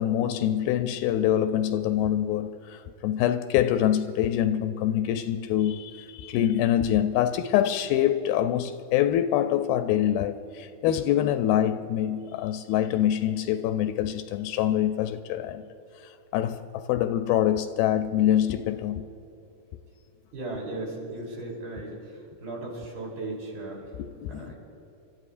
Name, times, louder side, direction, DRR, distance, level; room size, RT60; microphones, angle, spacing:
voice 1, 0.0-15.6 16.0-19.1 23.9-24.5, left 11 dB, 85° left, 2.3 m, -25 dB
voice 2, 20.3-22.1 22.4-23.8 24.3-24.6, right 2 dB, 70° right, 5.1 m, -36 dB
29.5 x 13.5 x 2.5 m
omnidirectional pair, 4.3 m